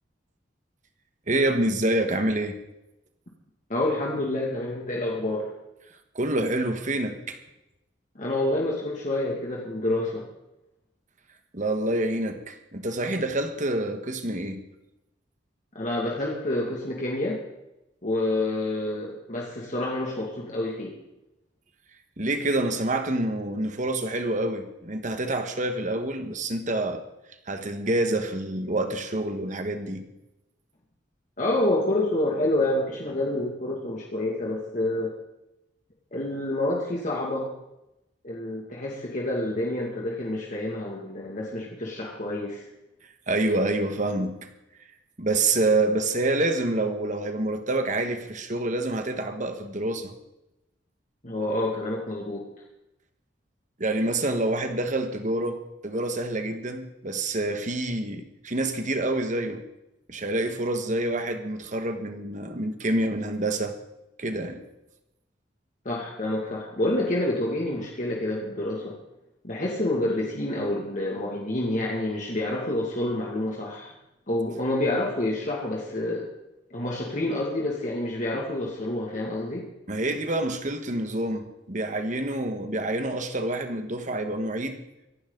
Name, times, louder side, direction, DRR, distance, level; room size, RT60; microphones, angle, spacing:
voice 1, 1.3-2.6 6.1-7.4 11.5-14.6 22.2-27.0 27.5-30.1 43.3-44.5 45.2-50.1 53.8-59.6 60.1-63.7 64.2-64.6 79.9-84.8, right 2 dB, 45° right, 7 dB, 1.6 m, -27 dB
voice 2, 3.7-5.5 8.2-10.2 15.7-17.4 18.0-20.9 31.4-35.1 36.1-37.5 38.2-42.6 51.2-52.4 65.8-68.9 69.4-73.9 74.3-76.3 76.7-79.7, left 1 dB, 45° left, -3 dB, 2.3 m, -28 dB
24.5 x 11.5 x 4.0 m, 0.92 s
head